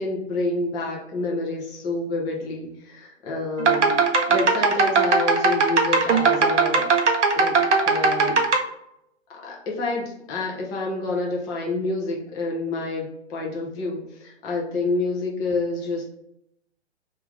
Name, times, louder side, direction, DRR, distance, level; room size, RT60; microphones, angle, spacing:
voice 1, 0.0-6.9 7.3-7.6 7.8-8.4 9.3-16.1, left 2 dB, 10° left, -2 dB, 0.4 m, -28 dB
sound 1, 3.6-8.6, right 4 dB, 85° right, 0.6 m, -19 dB
3.2 x 2.5 x 3.1 m, 0.80 s
figure-of-eight pair, 115°, 35 cm